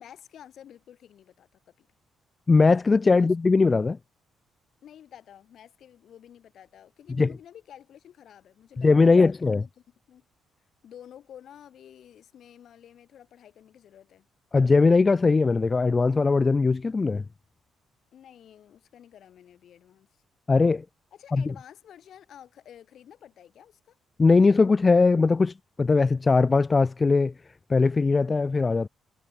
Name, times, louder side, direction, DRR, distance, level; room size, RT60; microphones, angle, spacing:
voice 1, 0.0-1.9 3.1-3.3 4.8-9.7 10.1-10.3 10.8-14.3 18.1-20.1 21.1-24.0, left 10 dB, 65° left, 7.3 m, -50 dB
voice 2, 2.5-4.0 7.2-7.3 8.8-9.6 14.5-17.2 20.5-20.8 21.3-21.4 24.2-27.3 27.7-28.9, left 4 dB, 30° left, 0.5 m, -20 dB
cardioid pair, 90°, 0 cm